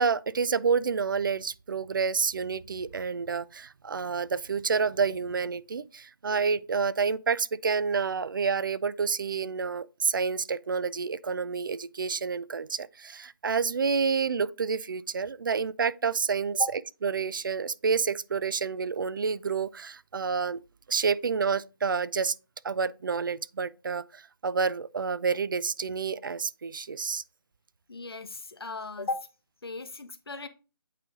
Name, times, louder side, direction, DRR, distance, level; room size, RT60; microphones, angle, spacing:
voice 1, 0.0-16.6 17.0-20.6 20.9-22.4 22.6-27.2, right 5 dB, 60° right, 0.4 m, -29 dB
voice 2, 27.9-29.3 29.6-30.5, left 3 dB, 80° left, 1.0 m, -35 dB
8.4 x 3.3 x 3.7 m
figure-of-eight pair, 160°, 12 cm